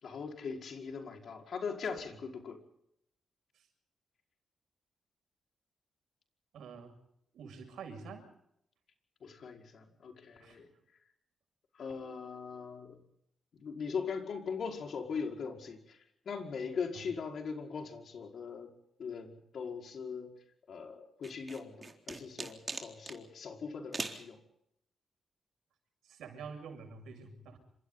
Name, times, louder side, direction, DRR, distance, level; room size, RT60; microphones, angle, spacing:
voice 1, 0.0-2.6 9.2-10.7 11.7-13.0 13.5-16.0 16.3-18.7 19.0-20.4 20.7-24.4, left 5 dB, 65° left, 2 dB, 5.3 m, -40 dB
voice 2, 6.5-7.0 7.3-8.3 10.4-10.6 16.9-17.1 26.0-27.6, right 5 dB, 90° right, 5 dB, 7.0 m, -47 dB
sound 1, 21.2-23.2 23.9-24.2, right 3 dB, 30° right, 3.9 m, -40 dB
28.5 x 27.0 x 4.1 m, 0.78 s
cardioid pair, 85°, 0 cm